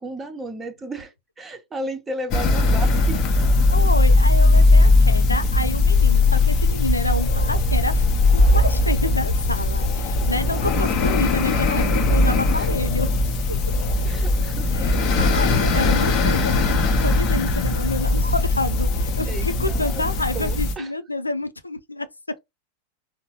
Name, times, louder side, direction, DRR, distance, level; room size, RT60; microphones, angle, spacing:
voice 1, 0.0-3.3 12.5-12.7 14.0-15.3 19.3-20.0 20.3-20.9, right 2 dB, 15° right, 0.9 m, -34 dB
sound 1, 2.3-20.7, left 2 dB, 40° left, 0.9 m, -19 dB
voice 2, 3.7-8.0 8.3-13.2 14.7-22.1, left 2 dB, 80° left, 0.4 m, -28 dB
3.9 x 2.2 x 2.9 m
figure-of-eight pair, 90°, 0 cm